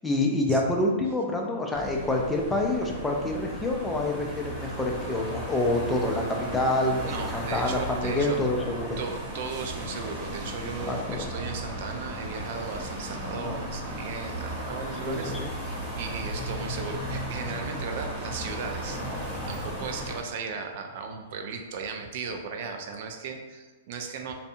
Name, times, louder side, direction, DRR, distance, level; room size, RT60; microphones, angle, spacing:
voice 1, 0.0-9.0 10.9-11.3 13.4-13.6 15.1-15.5, left 2 dB, 10° left, 0 dB, 0.4 m, -27 dB
sound 1, 1.7-20.2, equal, 20° right, 0.8 m, -35 dB
voice 2, 7.1-8.4 9.0-15.3 15.6-24.3, right 5 dB, 55° right, 4 dB, 0.4 m, -36 dB
2.6 x 2.1 x 2.7 m, 1.3 s
hypercardioid pair, 140°, 0 cm